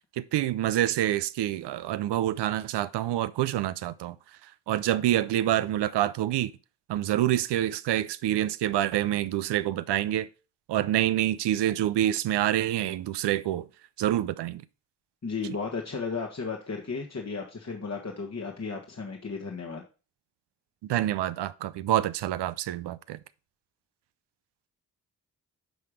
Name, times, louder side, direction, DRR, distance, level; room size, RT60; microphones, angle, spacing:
voice 1, 0.2-4.2 4.7-6.5 6.9-10.3 10.7-13.7 14.0-14.6 20.9-23.2, right 13 dB, 80° right, 0.5 m, -27 dB
voice 2, 15.2-19.8, left 4 dB, 40° left, 1.3 m, -34 dB
10.0 x 3.5 x 4.9 m
supercardioid pair, 40°, 41 cm